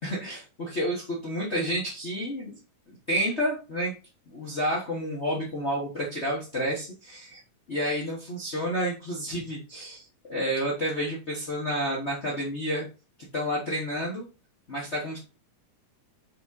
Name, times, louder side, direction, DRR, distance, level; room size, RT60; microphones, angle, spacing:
voice 1, 0.0-2.6 2.9-3.9 4.3-7.4 7.7-12.9 13.3-14.3 14.7-15.2, equal, 65° left, -4 dB, 0.6 m, -30 dB
5.1 x 5.0 x 3.7 m, 0.32 s
omnidirectional pair, 3.7 m